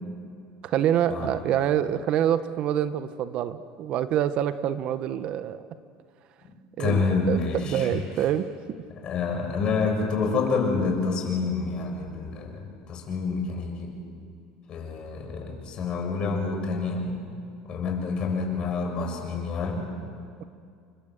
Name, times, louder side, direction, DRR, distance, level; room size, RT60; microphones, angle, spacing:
voice 1, 0.6-5.7 6.8-7.4 7.6-8.5, right 10 dB, 50° right, 12 dB, 1.1 m, -26 dB
voice 2, 6.4-8.0 9.0-13.9 14.7-17.2 17.7-19.9, left 4 dB, 40° left, 2 dB, 6.9 m, -28 dB
30.0 x 24.5 x 8.0 m, 2.3 s
cardioid pair, 135°, 2 cm